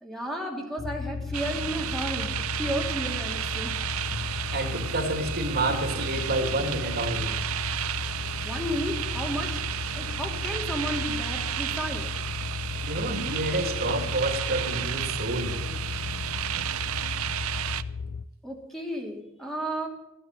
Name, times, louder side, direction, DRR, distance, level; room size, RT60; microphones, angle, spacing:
voice 1, 0.0-4.5 8.4-9.6 9.9-12.1 18.4-19.9, equal, ahead, 0 dB, 2.7 m, -33 dB
sound 1, 0.8-18.3, left 5 dB, 45° left, 0.4 m, -35 dB
sound 2, 1.3-17.8, right 11 dB, 80° right, 0.6 m, -33 dB
voice 2, 4.1-7.4 12.8-15.8, right 2 dB, 50° right, 5 dB, 2.7 m, -29 dB
14.5 x 9.8 x 9.7 m, 0.94 s
head